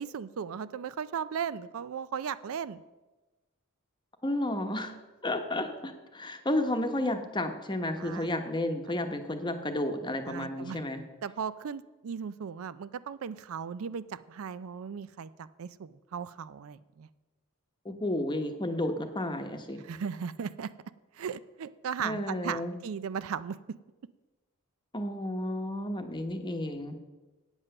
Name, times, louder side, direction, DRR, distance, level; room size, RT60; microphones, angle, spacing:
voice 1, 0.0-2.8 7.9-8.3 10.3-10.8 11.2-17.1 19.8-20.7 21.1-23.8, right 7 dB, 70° right, 15 dB, 0.4 m, -37 dB
voice 2, 4.2-4.9 5.2-11.0 17.8-19.8 22.0-22.7 24.9-27.0, left 1 dB, 20° left, 6 dB, 0.9 m, -32 dB
8.9 x 7.9 x 6.5 m, 1.1 s
head